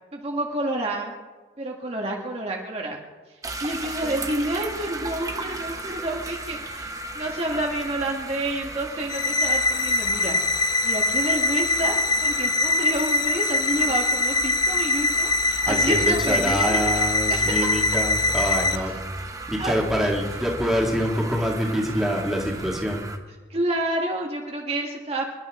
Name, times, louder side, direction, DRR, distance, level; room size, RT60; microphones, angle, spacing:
voice 1, 0.1-1.1 1.6-3.0 3.6-6.9 7.1-10.4 10.8-11.9 12.2-17.8 18.7-19.0 19.6-20.1 23.5-25.3, right 1 dB, 35° right, 0 dB, 1.6 m, -29 dB
sound 1, 3.4-23.2, right 2 dB, 20° right, 1.1 m, -35 dB
sound 2, 9.1-18.8, left 2 dB, 25° left, 0.5 m, -23 dB
voice 2, 15.7-18.9 19.2-23.1, equal, ahead, -2 dB, 2.1 m, -25 dB
27.0 x 12.0 x 3.7 m, 1.4 s
head